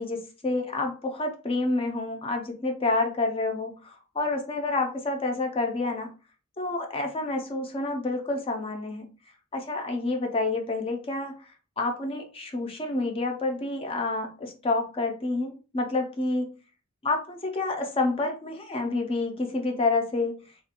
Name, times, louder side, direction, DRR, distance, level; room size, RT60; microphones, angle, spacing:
voice 1, 0.0-6.1 6.6-9.1 9.5-11.5 11.8-16.5 17.0-20.4, left 2 dB, 30° left, 3 dB, 0.5 m, -28 dB
2.5 x 2.2 x 2.8 m, 0.34 s
head